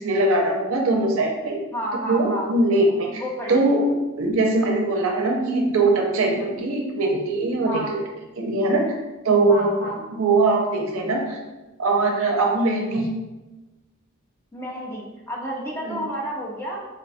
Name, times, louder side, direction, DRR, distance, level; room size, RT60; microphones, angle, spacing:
voice 1, 0.0-1.6 2.0-3.2 3.5-3.8 4.2-8.0 8.4-8.9 9.2-11.4 11.8-13.1 15.8-16.1, right 2 dB, 65° right, 1 dB, 0.5 m, -21 dB
voice 2, 1.7-2.5 3.1-3.7 7.6-7.9 9.5-10.0 14.5-16.9, equal, 10° left, -3 dB, 0.5 m, -30 dB
3.8 x 2.1 x 2.6 m, 1.1 s
head